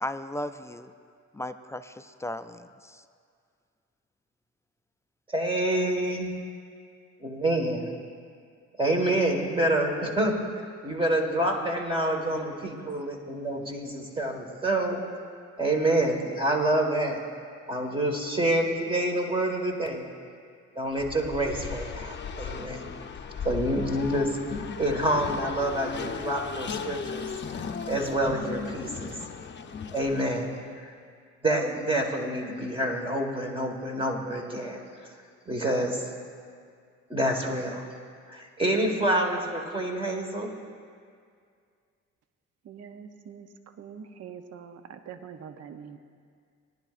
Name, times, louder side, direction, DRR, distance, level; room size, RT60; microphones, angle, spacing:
voice 1, 0.0-0.9 1.3-3.0, left 1 dB, 10° left, 9 dB, 0.3 m, -36 dB
voice 2, 5.3-6.3 7.2-7.9 8.8-10.3 10.8-15.0 15.6-17.2 17.7-20.0 20.7-22.8 23.4-24.3 24.8-27.3 27.9-29.2 29.9-30.5 31.4-34.8 35.5-36.1 37.1-37.8 38.3-40.5, right 1 dB, 15° right, 1 dB, 1.6 m, -27 dB
Race car auto racing, 20.9-30.6, left 6 dB, 35° left, 0.7 m, -37 dB
voice 3, 42.7-43.5 43.8-46.0, right 7 dB, 55° right, 8 dB, 0.7 m, -44 dB
18.5 x 11.0 x 2.5 m, 2.2 s
cardioid pair, 90°, 30 cm